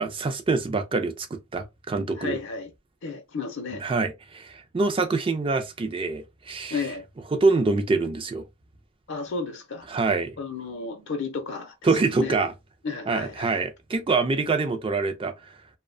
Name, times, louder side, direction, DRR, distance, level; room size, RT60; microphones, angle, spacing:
voice 1, 0.0-2.4 3.7-6.8 7.3-8.4 9.9-10.4 11.8-12.5 13.1-15.5, right 3 dB, 25° right, 0.3 m, -25 dB
voice 2, 2.1-2.7 3.0-3.8 6.7-7.0 9.1-9.9 10.4-12.4 12.8-13.6, left 4 dB, 55° left, 0.5 m, -33 dB
2.5 x 2.1 x 2.4 m
head